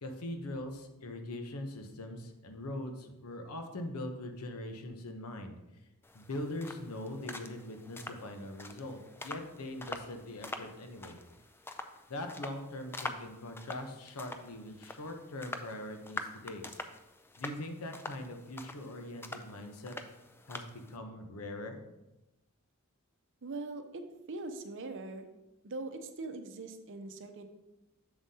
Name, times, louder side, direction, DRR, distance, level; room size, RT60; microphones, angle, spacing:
voice 1, 0.0-5.5 6.1-11.2 12.1-16.7 17.4-19.9 20.5-21.8, left 1 dB, 80° left, 5 dB, 0.9 m, -42 dB
sound 1, 6.0-21.0, left 2 dB, 10° left, 0.3 m, -46 dB
voice 2, 23.4-24.0 24.3-25.3 25.6-27.4, right 3 dB, 55° right, 7 dB, 0.7 m, -41 dB
7.3 x 7.1 x 2.8 m, 0.98 s
head